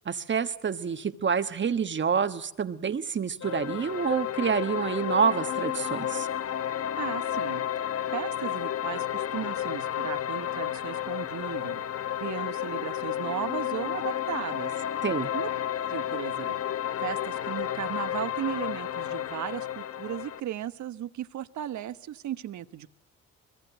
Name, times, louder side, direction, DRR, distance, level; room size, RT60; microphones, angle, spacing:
voice 1, 0.0-6.3 15.0-15.3, right 6 dB, 40° right, 10 dB, 1.3 m, -27 dB
sound 1, 3.4-20.4, left 10 dB, 50° left, 0.9 m, -32 dB
voice 2, 7.0-7.6 8.1-11.8 12.2-14.7 15.3-15.5 15.9-16.6 17.0-22.9, right 11 dB, 70° right, 12 dB, 1.2 m, -36 dB
25.0 x 21.5 x 8.1 m, 0.81 s
cardioid pair, 90°, 30 cm